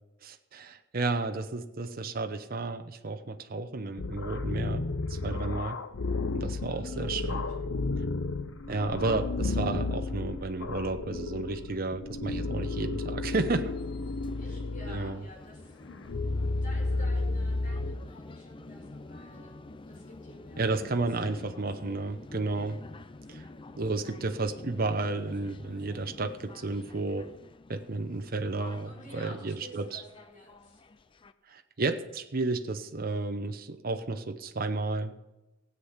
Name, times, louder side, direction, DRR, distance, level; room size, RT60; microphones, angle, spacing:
voice 1, 0.2-5.8 6.3-7.5 8.7-13.7 14.9-15.2 20.6-22.8 23.3-23.4 23.8-27.3 27.7-30.0 31.5-35.1, right 3 dB, 50° right, 7 dB, 0.8 m, -32 dB
sound 1, 4.0-15.2 15.9-18.0, left 3 dB, 85° left, 0.7 m, -32 dB
voice 2, 6.8-7.8 14.4-15.8 16.6-19.6 19.9-21.5 28.8-30.8, left 1 dB, 45° left, -1 dB, 5.6 m, -51 dB
sound 2, 13.4-31.3, left 2 dB, 25° left, 0.5 m, -48 dB
16.0 x 8.3 x 5.7 m, 0.99 s
head